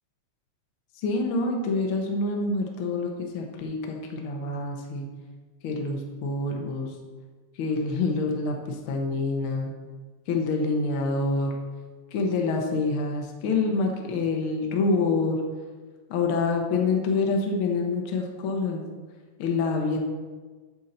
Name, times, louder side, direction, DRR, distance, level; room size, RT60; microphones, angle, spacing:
voice 1, 1.0-5.1 5.6-6.9 7.5-9.7 10.3-11.5 12.1-15.4 16.1-18.8 19.4-20.0, left 3 dB, 60° left, 1 dB, 1.5 m, -26 dB
8.5 x 4.5 x 6.6 m, 1.4 s
omnidirectional pair, 3.4 m